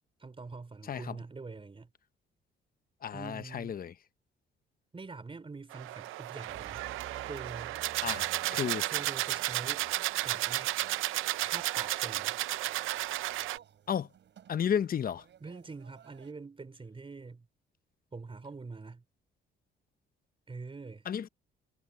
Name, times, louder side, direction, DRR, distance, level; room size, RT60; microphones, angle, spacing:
voice 1, 0.2-1.9 3.1-3.8 4.9-6.9 7.3-7.8 8.8-9.9 10.2-10.7 11.4-12.4 15.4-17.5 18.1-19.0 20.5-21.1, right 4 dB, 25° right, 4.3 m, -45 dB
voice 2, 3.0-3.9 8.0-8.9 13.9-14.1 14.5-15.2 21.1-21.3, left 8 dB, 45° left, 0.9 m, -33 dB
sound 1, 5.7-13.6, right 16 dB, 90° right, 0.6 m, -33 dB
sound 2, 6.5-16.3, right 9 dB, 65° right, 7.6 m, -52 dB
cardioid pair, 90°, 20 cm